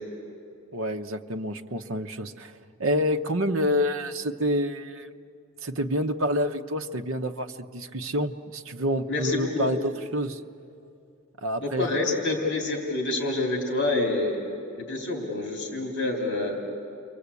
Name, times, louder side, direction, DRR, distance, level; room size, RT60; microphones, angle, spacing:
voice 1, 0.7-5.1 5.6-10.4 11.4-11.9, equal, 60° right, 6 dB, 0.9 m, -28 dB
voice 2, 9.1-9.7 11.6-14.4 14.7-16.6, left 2 dB, 50° left, 0 dB, 3.1 m, -27 dB
29.0 x 24.0 x 8.3 m, 2.6 s
head